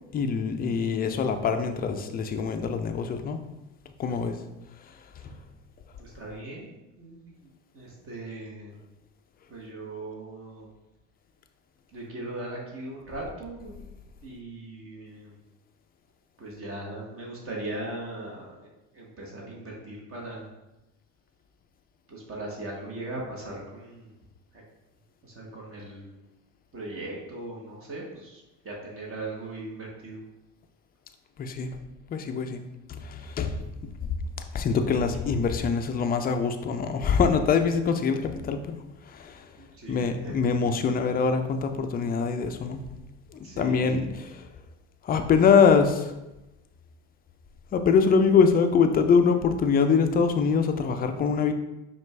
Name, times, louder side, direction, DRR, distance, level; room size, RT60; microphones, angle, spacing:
voice 1, 0.1-3.4 4.0-4.3 5.2-5.3 31.4-31.7 32.1-32.6 32.9-33.6 34.5-38.7 39.1-39.3 39.9-42.8 43.6-44.4 45.0-46.0 47.7-51.5, left 5 dB, 25° left, 7 dB, 0.4 m, -23 dB
voice 2, 4.0-4.4 6.0-8.7 9.5-10.6 11.9-13.8 14.2-15.3 16.4-18.7 18.9-20.5 22.1-24.1 25.2-26.0 26.7-30.2 39.6-40.4 43.4-44.0, right 2 dB, 35° right, -3 dB, 1.2 m, -39 dB
5.1 x 2.5 x 3.3 m, 0.98 s
hypercardioid pair, 85°, 38 cm